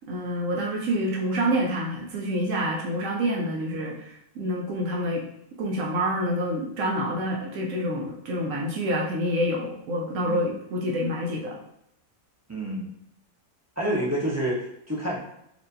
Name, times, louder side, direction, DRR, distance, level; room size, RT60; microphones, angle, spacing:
voice 1, 0.1-5.2 5.6-11.6, equal, 80° right, -2 dB, 1.0 m, -27 dB
voice 2, 12.5-12.9 13.8-15.2, right 1 dB, 20° right, -6 dB, 0.4 m, -28 dB
4.2 x 2.6 x 2.6 m, 0.79 s
omnidirectional pair, 1.4 m